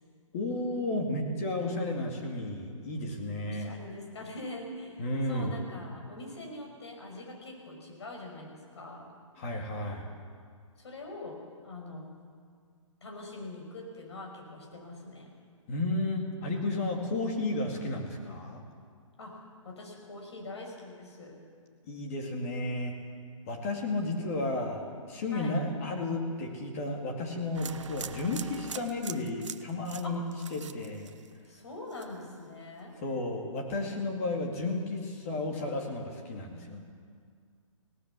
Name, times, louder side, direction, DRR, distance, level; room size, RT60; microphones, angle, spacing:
voice 1, 0.3-3.7 5.0-5.5 9.4-10.1 15.7-18.6 21.8-22.9 23.5-30.2 30.5-31.1 33.0-36.8, left 2 dB, 25° left, 1 dB, 2.4 m, -33 dB
voice 2, 3.4-9.1 10.8-12.1 13.0-15.3 19.2-19.4 19.6-21.4 25.3-25.6 30.0-30.2 31.5-33.0, left 2 dB, 55° left, 1 dB, 5.9 m, -43 dB
sound 1, 27.5-31.6 31.9-32.4, right 7 dB, 60° right, 0.9 m, -43 dB
19.0 x 18.0 x 8.3 m, 2.1 s
hypercardioid pair, 170°, 17 cm